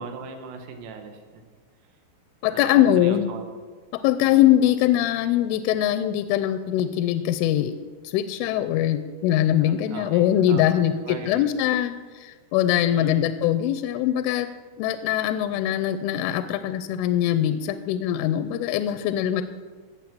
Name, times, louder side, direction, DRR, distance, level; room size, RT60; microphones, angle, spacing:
voice 1, 0.0-1.5 2.5-3.5 4.2-4.4 9.6-11.5 12.9-13.3, right 5 dB, 75° right, 5 dB, 3.9 m, -39 dB
voice 2, 2.4-3.3 4.0-7.7 8.1-14.5 14.8-19.4, left 11 dB, 85° left, 10 dB, 2.9 m, -22 dB
17.0 x 6.9 x 7.5 m, 1.4 s
omnidirectional pair, 5.9 m